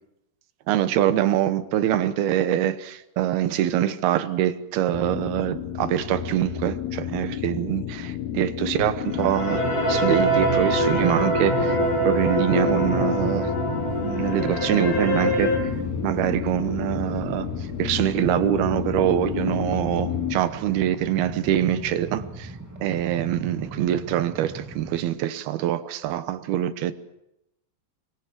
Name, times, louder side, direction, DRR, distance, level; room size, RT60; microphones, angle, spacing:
voice 1, 0.7-11.8 12.0-13.5 14.0-15.7 16.0-22.5 22.8-26.9, right 11 dB, 70° right, 2.9 m, -24 dB
sound 1, 4.9-20.4, left 10 dB, 75° left, 3.0 m, -31 dB
sound 2, 9.0-15.6, equal, 50° left, 7.3 m, -24 dB
Train, 9.8-25.0, right 1 dB, 10° right, 1.1 m, -38 dB
25.0 x 21.5 x 7.6 m
omnidirectional pair, 4.8 m